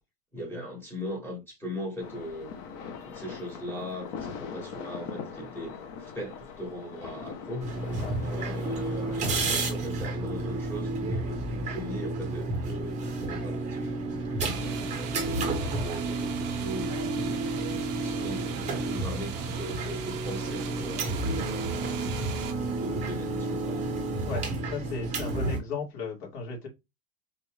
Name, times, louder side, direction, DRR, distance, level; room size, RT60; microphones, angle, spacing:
voice 1, 0.3-2.5 3.0-7.7 8.2-14.0 14.2-21.9 22.6-24.0, equal, 5° left, 1.0 m, -39 dB
sound 1, 2.0-9.7, left 6 dB, 35° left, 0.8 m, -41 dB
sound 2, 7.6-25.6, right 2 dB, 15° right, 0.8 m, -31 dB
voice 2, 14.4-14.9 24.2-26.7, left 4 dB, 70° left, 2.6 m, -36 dB
sound 3, 14.4-22.5, right 8 dB, 30° right, 0.4 m, -41 dB
4.1 x 2.5 x 3.2 m
supercardioid pair, 160°, 48 cm